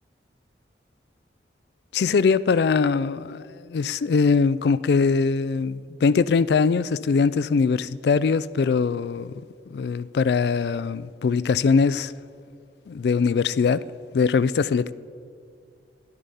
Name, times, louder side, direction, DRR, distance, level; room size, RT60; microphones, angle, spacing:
voice 1, 1.9-9.3 9.7-12.1 12.9-13.8 14.1-14.9, left 5 dB, 65° left, 0.3 m, -22 dB
12.5 x 11.5 x 5.5 m
head